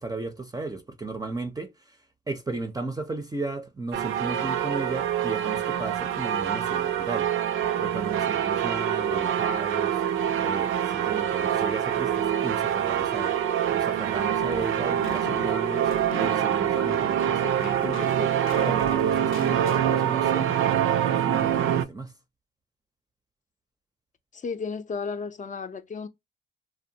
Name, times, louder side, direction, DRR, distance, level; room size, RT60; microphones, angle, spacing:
voice 1, 0.0-2.0 2.3-7.3 7.8-13.4 13.7-22.1, right 3 dB, 20° right, 0.5 m, -35 dB
sound 1, 3.9-21.8, right 10 dB, 85° right, 0.4 m, -25 dB
sound 2, 14.4-19.9, left 7 dB, 85° left, 0.5 m, -42 dB
voice 2, 24.3-26.1, left 5 dB, 40° left, 0.5 m, -33 dB
2.7 x 2.1 x 2.7 m
cardioid pair, 70°, 20 cm